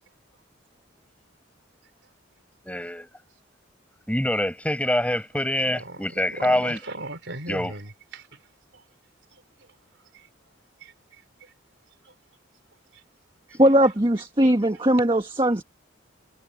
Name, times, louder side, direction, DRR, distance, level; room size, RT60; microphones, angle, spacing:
voice 1, 2.6-3.1 4.1-6.8 7.5-7.8, left 1 dB, 5° left, 7.3 m, -25 dB
voice 2, 5.6-8.2 10.8-10.9 13.6-13.7, right 2 dB, 65° right, 4.5 m, -37 dB
voice 3, 13.6-15.6, right 1 dB, 25° right, 1.6 m, -19 dB
head